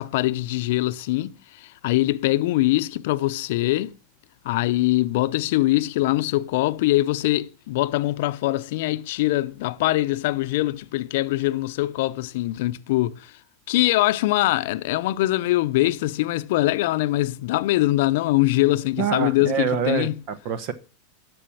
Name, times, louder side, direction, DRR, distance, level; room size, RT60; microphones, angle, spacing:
voice 1, 0.0-1.3 1.6-3.9 4.4-13.3 13.7-20.2, left 17 dB, 65° left, 0.6 m, -23 dB
voice 2, 19.0-20.7, right 8 dB, 55° right, 1.1 m, -26 dB
11.5 x 6.2 x 6.0 m
hypercardioid pair, 100°, 0 cm